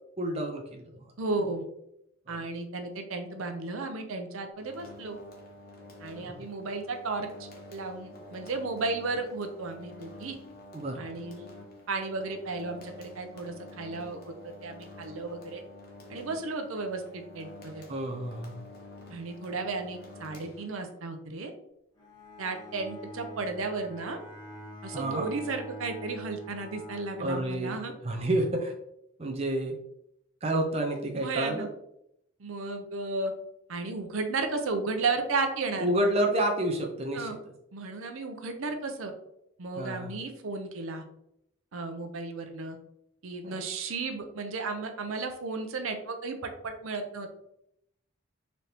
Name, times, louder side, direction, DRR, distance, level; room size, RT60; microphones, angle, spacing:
voice 1, 0.2-1.0 2.3-2.5 6.2-6.4 10.7-11.0 17.9-18.6 24.9-25.3 27.2-28.7 29.2-29.8 30.4-31.7 35.8-37.3 39.8-40.2 43.4-43.6, right 1 dB, 30° right, 2 dB, 0.5 m, -29 dB
voice 2, 1.2-1.6 2.3-5.2 6.0-10.4 11.0-11.5 11.9-15.6 16.1-17.8 19.1-21.5 22.4-24.2 24.8-27.9 31.1-31.7 32.4-33.3 33.7-35.9 37.1-37.4 37.7-39.1 39.6-41.0 41.7-42.8 43.2-47.3, right 3 dB, 85° right, 6 dB, 0.6 m, -34 dB
sound 1, 4.6-21.1, left 1 dB, 50° left, 0.8 m, -49 dB
Bowed string instrument, 22.0-27.8, equal, 20° left, 0.9 m, -45 dB
4.1 x 2.8 x 3.3 m, 0.77 s
head